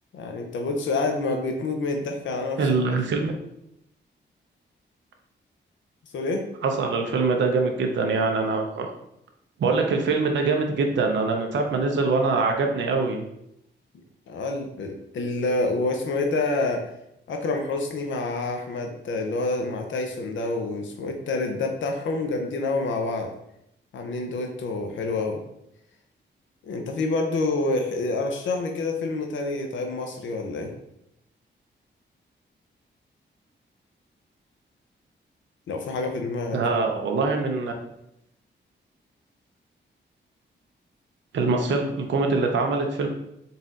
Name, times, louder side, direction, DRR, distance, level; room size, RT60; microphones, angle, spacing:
voice 1, 0.1-2.6 6.1-6.4 14.3-16.8 17.3-23.3 23.9-25.4 26.6-30.7 35.7-36.9, left 3 dB, 85° left, 3 dB, 0.6 m, -27 dB
voice 2, 2.6-3.3 6.6-8.9 9.6-13.2 36.5-37.7 41.3-43.1, right 3 dB, 75° right, 3 dB, 0.6 m, -23 dB
4.0 x 4.0 x 2.5 m, 0.79 s
wide cardioid pair, 130°, 19 cm